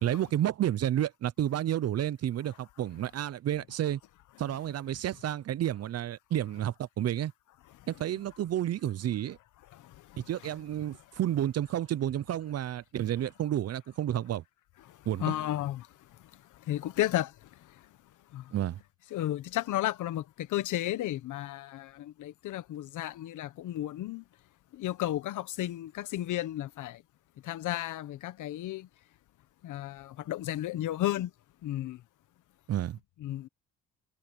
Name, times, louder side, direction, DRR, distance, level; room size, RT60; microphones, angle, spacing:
voice 1, 0.0-4.0 4.4-7.3 7.9-9.4 10.2-14.4 15.1-15.3 18.5-18.8 32.7-33.0, right 11 dB, 55° right, 0.7 m, -31 dB
voice 2, 15.2-15.9 16.7-17.3 18.3-18.4 19.1-24.2 24.7-27.0 27.4-28.9 29.6-31.3 31.6-32.0 33.2-33.5, left 14 dB, 80° left, 1.2 m, -33 dB
cardioid pair, 90°, 30 cm